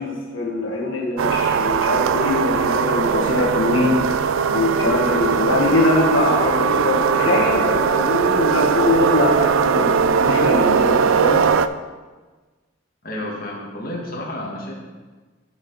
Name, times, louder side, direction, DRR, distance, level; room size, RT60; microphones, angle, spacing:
voice 1, 0.0-4.2 4.5-11.4, left 2 dB, 85° left, -2 dB, 1.4 m, -22 dB
sound 1, 1.2-11.7, right 6 dB, 90° right, 0.4 m, -19 dB
voice 2, 13.0-14.8, left 1 dB, 50° left, -3 dB, 1.7 m, -30 dB
12.0 x 4.9 x 4.2 m, 1.3 s
head